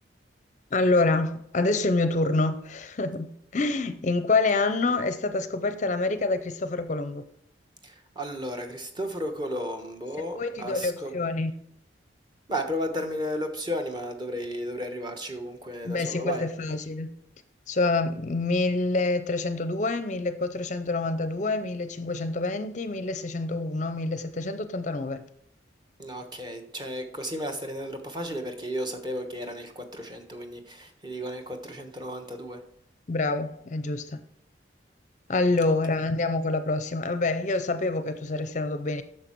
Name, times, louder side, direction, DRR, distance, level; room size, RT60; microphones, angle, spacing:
voice 1, 0.7-7.2 10.3-11.5 15.8-17.1 17.7-25.2 33.1-34.2 35.3-39.0, left 3 dB, 40° left, 0.5 m, -27 dB
voice 2, 7.8-11.1 12.5-16.4 26.0-32.6, equal, 25° right, 1.1 m, -34 dB
9.0 x 6.4 x 4.5 m
head